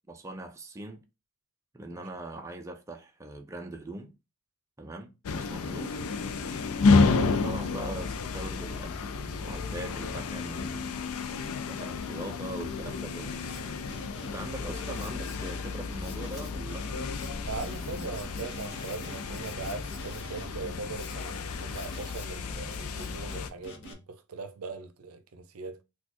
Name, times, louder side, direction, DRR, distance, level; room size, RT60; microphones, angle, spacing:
voice 1, 0.1-1.0 1.7-4.1 4.8-6.0 6.9-11.1 11.7-13.4 14.2-17.0, right 2 dB, 15° right, 0.4 m, -41 dB
sound 1, 5.2-23.5, left 4 dB, 85° left, 0.4 m, -31 dB
Drum kit, 13.1-23.9, left 1 dB, 55° left, 0.7 m, -45 dB
sound 2, 15.9-23.5, left 1 dB, 15° left, 1.4 m, -51 dB
voice 2, 17.5-25.8, right 4 dB, 80° right, 0.5 m, -40 dB
4.1 x 2.3 x 2.9 m
head